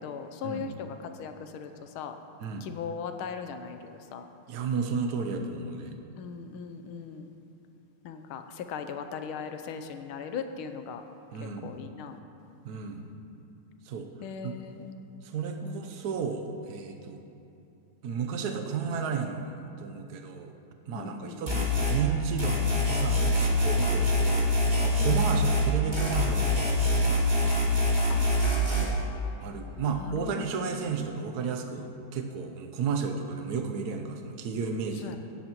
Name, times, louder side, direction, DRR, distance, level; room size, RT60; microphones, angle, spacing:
voice 1, 0.0-2.1 2.6-4.3 6.2-7.3 8.0-11.0 11.4-12.2 14.2-14.9 15.6-15.8 20.9-21.4 25.0-25.2 28.1-29.5 29.8-31.2 35.0-35.2, left 6 dB, 85° left, 8 dB, 1.5 m, -39 dB
voice 2, 4.5-5.9 11.3-11.8 12.6-13.1 13.8-14.1 14.4-14.6 15.2-17.2 18.0-20.5 20.9-24.5 24.8-27.6 29.4-35.2, right 5 dB, 60° right, 4 dB, 1.1 m, -33 dB
sound 1, 21.5-22.0 22.4-25.7 25.9-28.9, left 1 dB, 25° right, 1.9 m, -25 dB
16.5 x 9.9 x 3.0 m, 2.7 s
omnidirectional pair, 2.3 m